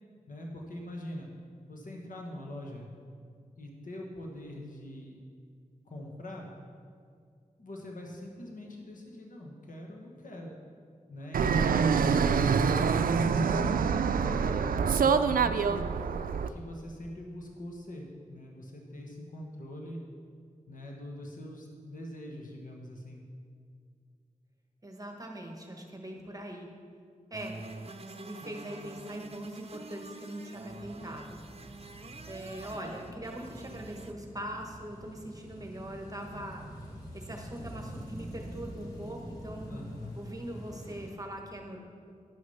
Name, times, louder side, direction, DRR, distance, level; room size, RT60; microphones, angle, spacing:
voice 1, 0.3-1.3 1.7-2.9 3.6-5.2 5.8-6.5 7.6-10.5 11.1-13.6 14.2-15.9 16.3-20.0 20.7-23.2 39.7-40.3, equal, 70° left, 0 dB, 1.4 m, -42 dB
Fixed-wing aircraft airplane, 11.3-16.5, right 6 dB, 85° right, 0.4 m, -26 dB
voice 2, 24.8-26.7 27.3-27.6 28.1-31.4 32.3-36.6 37.1-39.9 40.2-41.8, right 1 dB, 25° right, 1 dB, 1.3 m, -41 dB
sound 1, 27.3-34.1, right 3 dB, 45° right, 0.7 m, -46 dB
sound 2, 30.7-41.1, equal, 25° left, 2.4 m, -46 dB
11.0 x 6.4 x 5.6 m, 2.2 s
cardioid pair, 55°, 14 cm